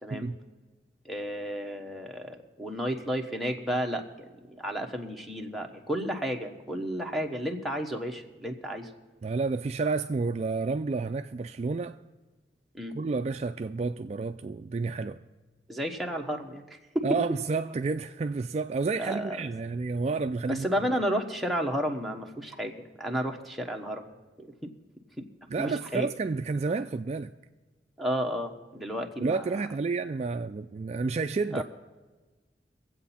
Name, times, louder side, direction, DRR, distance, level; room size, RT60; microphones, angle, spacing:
voice 1, 0.0-0.3 1.0-8.9 12.7-12.9 15.7-17.2 19.0-19.4 20.5-24.0 24.4-24.7 25.6-26.1 28.0-29.7 31.5-31.6, equal, ahead, 1.0 m, -32 dB
voice 2, 9.2-12.0 12.9-15.2 17.0-20.7 25.5-27.3 29.2-31.6, right 4 dB, 40° right, 0.3 m, -30 dB
24.0 x 8.0 x 4.3 m
head